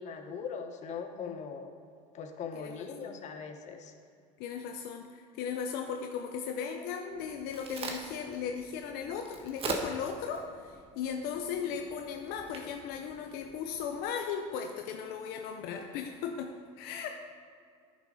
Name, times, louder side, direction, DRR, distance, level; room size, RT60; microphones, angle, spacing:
voice 1, 0.0-1.7 2.1-3.9, left 6 dB, 45° left, 5 dB, 1.1 m, -40 dB
voice 2, 2.5-3.2 4.4-17.1, left 7 dB, 70° left, 4 dB, 0.7 m, -37 dB
Crack, 7.1-14.0, right 3 dB, 35° right, 1.3 m, -43 dB
10.5 x 6.4 x 4.9 m, 2.2 s
supercardioid pair, 110°, 17 cm